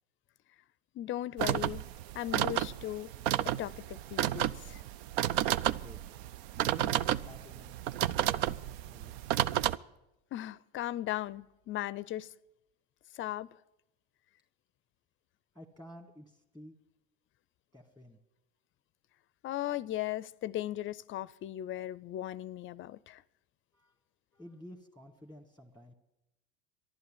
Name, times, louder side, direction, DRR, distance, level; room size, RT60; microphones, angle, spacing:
voice 1, 0.9-1.8 2.1-3.1 3.4-4.8 10.3-12.3 13.1-13.5 19.4-23.2, left 14 dB, 40° left, 0.5 m, -37 dB
sound 1, 1.4-9.8, right 12 dB, 75° right, 0.5 m, -31 dB
voice 2, 6.6-7.7 8.2-9.2 15.5-16.7 17.7-18.2 23.7-23.9 24.3-25.9, equal, 5° right, 1.6 m, -51 dB
12.5 x 11.5 x 8.7 m
hypercardioid pair, 95°, 31 cm